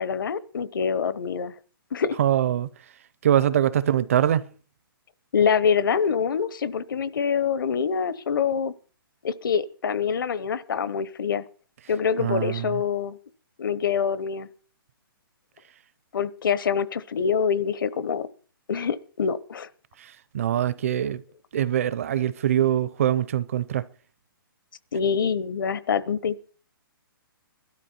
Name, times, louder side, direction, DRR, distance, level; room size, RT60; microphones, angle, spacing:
voice 1, 0.0-1.5 1.9-2.2 5.3-8.7 9.2-11.4 11.9-13.2 13.6-14.5 16.1-18.3 18.7-19.7 24.9-26.4, left 6 dB, 60° left, 1.0 m, -25 dB
voice 2, 2.2-2.7 3.2-4.5 12.2-12.8 20.0-21.2 21.5-23.9, right 10 dB, 35° right, 0.6 m, -23 dB
17.5 x 12.5 x 4.3 m
hypercardioid pair, 170°, 12 cm